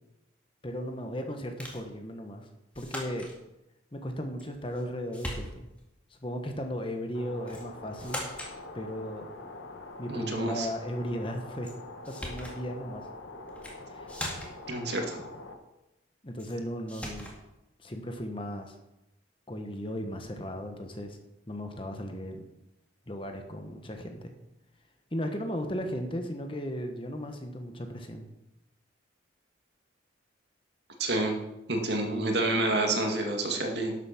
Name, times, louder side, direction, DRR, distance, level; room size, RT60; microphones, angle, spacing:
voice 1, 0.6-2.5 2.7-3.3 3.9-5.7 6.1-8.2 8.7-9.3 10.0-11.7 12.1-13.0 13.9-14.1 16.2-17.3 17.8-18.8 19.5-21.2 21.5-22.4 23.1-24.3 25.1-28.3, equal, 25° left, 5 dB, 1.3 m, -36 dB
sound 1, 1.6-1.9 2.7-3.4 4.4-4.9 5.1-5.8 7.5-7.7 8.0-8.6 11.6-11.7 12.0-12.6 13.5-13.8 14.1-14.7 16.4-16.6 16.9-17.4, left 1 dB, 5° left, 2.2 m, -39 dB
sound 2, 7.1-15.5, left 2 dB, 80° left, 1.5 m, -45 dB
voice 2, 10.1-10.7 14.7-15.2 31.0-31.3 31.7-34.0, right 2 dB, 60° right, 3 dB, 2.1 m, -28 dB
12.0 x 8.2 x 5.9 m, 0.92 s
head